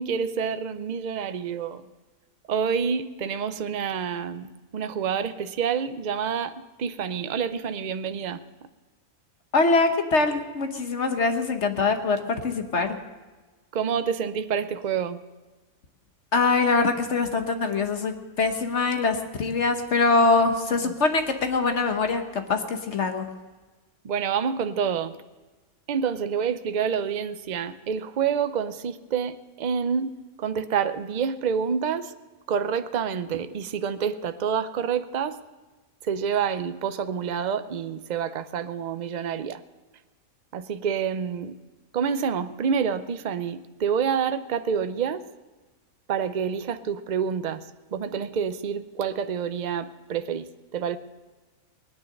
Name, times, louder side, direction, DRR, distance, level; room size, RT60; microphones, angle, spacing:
voice 1, 0.0-1.8 2.5-8.4 13.7-15.2 20.8-20.9 24.0-25.2 25.9-32.1 32.5-35.4 36.0-39.6 40.5-41.6 41.9-45.2 46.1-47.6 47.9-51.0, right 7 dB, 65° right, 11 dB, 0.4 m, -28 dB
voice 2, 9.5-13.0 16.3-23.3, left 3 dB, 50° left, 6 dB, 1.3 m, -23 dB
20.0 x 9.6 x 6.5 m, 1.2 s
omnidirectional pair, 1.6 m